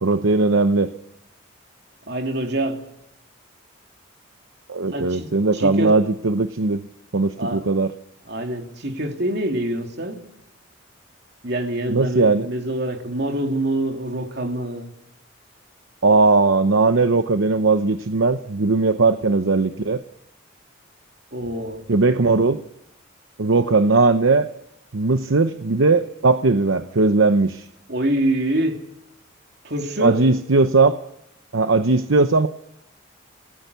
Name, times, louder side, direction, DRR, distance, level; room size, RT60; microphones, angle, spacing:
voice 1, 0.0-0.9 4.7-6.8 7.1-7.9 11.9-12.5 16.0-20.0 21.9-22.6 23.4-24.5 24.9-27.7 30.0-31.0 31.5-32.5, right 3 dB, 70° right, 0.8 m, -18 dB
voice 2, 2.1-2.8 4.9-5.3 5.5-5.9 7.4-7.6 8.3-10.2 11.4-14.9 21.3-21.8 27.9-28.8 29.6-30.2, right 1 dB, 50° right, 3.0 m, -25 dB
27.5 x 18.0 x 6.9 m
head